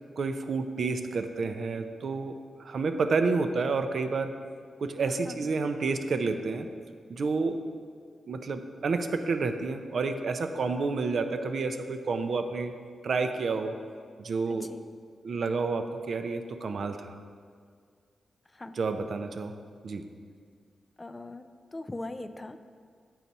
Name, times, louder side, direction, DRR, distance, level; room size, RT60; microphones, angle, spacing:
voice 1, 0.2-4.3 4.8-6.7 7.1-7.6 8.3-12.7 13.0-13.8 14.2-14.7 15.2-17.1 18.8-19.6 19.8-20.0, right 4 dB, 65° right, 8 dB, 0.4 m, -30 dB
voice 2, 5.1-5.5 14.5-14.8 18.5-18.8 21.0-21.5 21.7-22.6, left 2 dB, 25° left, 10 dB, 0.3 m, -40 dB
7.4 x 5.6 x 4.1 m, 2.1 s
cardioid pair, 85°, 0 cm